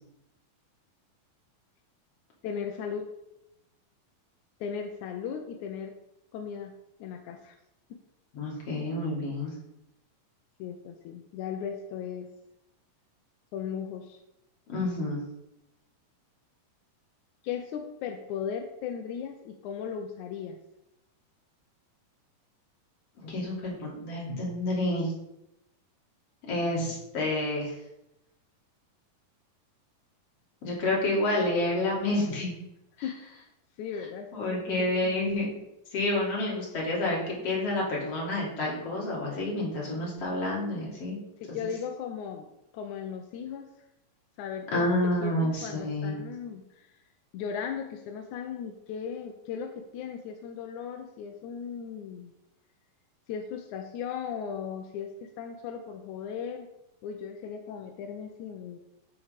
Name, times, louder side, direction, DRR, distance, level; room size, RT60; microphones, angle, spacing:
voice 1, 2.4-3.1 4.6-5.9 6.3-6.7 7.0-7.6 7.9-8.0 10.6-12.3 13.5-14.2 17.4-20.6 33.0-33.2 33.8-35.2 41.4-42.5 42.7-43.7 44.4-44.9 45.2-46.9 47.3-52.3 53.3-56.7 57.0-58.8, left 7 dB, 80° left, 5 dB, 1.8 m, -37 dB
voice 2, 8.3-9.5 14.7-15.2 23.2-25.1 26.5-27.7 30.6-32.5 34.3-35.6 35.9-41.2 44.7-46.2, left 1 dB, 45° left, -3 dB, 3.6 m, -29 dB
13.5 x 4.6 x 5.2 m, 0.86 s
omnidirectional pair, 4.1 m